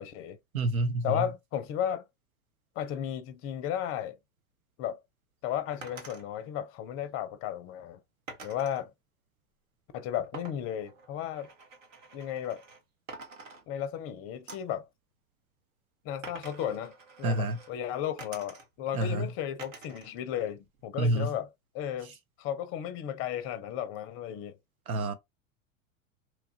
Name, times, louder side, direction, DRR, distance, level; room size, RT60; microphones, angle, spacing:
voice 1, 0.0-0.4 1.0-2.0 2.8-4.2 4.8-5.0 5.4-8.0 8.4-8.9 9.9-11.5 12.1-12.6 13.7-14.9 16.0-16.9 17.2-21.5 21.7-22.1 22.4-24.6, left 10 dB, 35° left, 0.5 m, -34 dB
voice 2, 0.5-1.2 17.2-17.6 18.9-19.3 21.0-21.3 24.9-25.1, right 2 dB, 85° right, 0.7 m, -28 dB
sound 1, 5.8-6.2 8.3-8.8 10.3-12.8 13.1-14.0 14.5-14.8 16.2-17.7 18.2-18.9 19.6-20.1 20.5-21.3, right 3 dB, 70° right, 1.2 m, -48 dB
3.0 x 2.4 x 2.7 m
hypercardioid pair, 90°, 42 cm